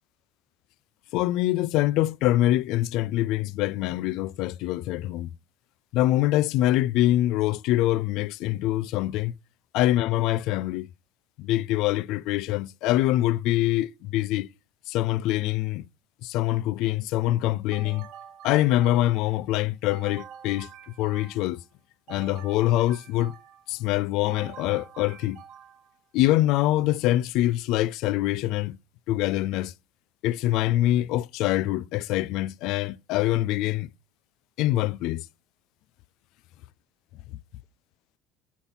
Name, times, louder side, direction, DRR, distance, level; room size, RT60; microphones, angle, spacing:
voice 1, 1.1-5.3 5.9-9.3 9.7-10.9 11.4-14.5 14.9-15.8 16.2-18.1 18.4-20.7 21.0-21.6 22.1-23.3 23.7-25.4 26.1-28.8 29.1-29.7 30.2-33.9 34.6-35.2, left 15 dB, 55° left, 0.3 m, -24 dB
sound 1, 17.7-19.4 19.9-21.6 22.1-23.7 24.3-26.0, right 8 dB, 50° right, 0.8 m, -46 dB
8.4 x 4.0 x 5.5 m
cardioid pair, 175°, 0 cm